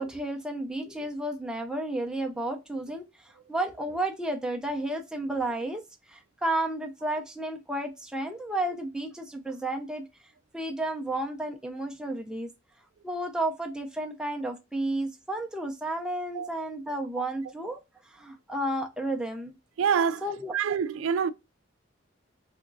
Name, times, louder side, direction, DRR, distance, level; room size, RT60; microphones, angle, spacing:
voice 1, 0.0-10.0 10.5-12.5 13.0-17.8 18.1-19.5 20.2-20.5, right 1 dB, 5° right, 0.5 m, -32 dB
voice 2, 19.8-20.3 20.5-21.3, right 7 dB, 90° right, 0.3 m, -26 dB
3.4 x 3.0 x 2.6 m
head